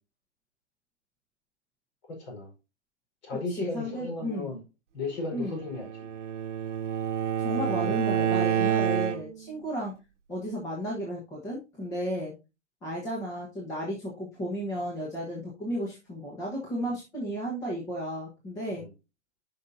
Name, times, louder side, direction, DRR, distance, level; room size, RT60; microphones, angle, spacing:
voice 1, 2.1-2.5 3.2-4.6 4.9-6.1 7.6-8.0 18.8-18.9, left 3 dB, 40° left, 0 dB, 4.5 m, -36 dB
voice 2, 3.3-4.5 5.3-5.6 7.4-9.9 10.3-12.3 12.8-18.8, equal, 10° left, -3 dB, 1.3 m, -34 dB
Bowed string instrument, 5.6-9.5, right 9 dB, 85° right, 1.1 m, -28 dB
10.5 x 5.8 x 2.7 m, 0.27 s
hypercardioid pair, 165°, 35 cm